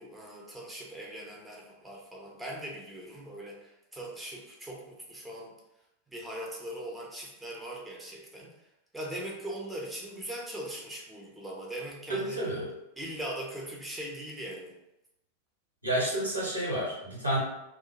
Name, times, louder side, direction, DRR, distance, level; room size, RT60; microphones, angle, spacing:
voice 1, 0.0-5.5 6.1-8.5 8.9-12.4 13.0-14.7, right 1 dB, 5° right, -3 dB, 0.6 m, -40 dB
voice 2, 12.1-12.7 15.8-17.4, right 1 dB, 85° right, -5 dB, 0.9 m, -30 dB
2.3 x 2.2 x 2.7 m, 0.88 s
figure-of-eight pair, 90°, 0 cm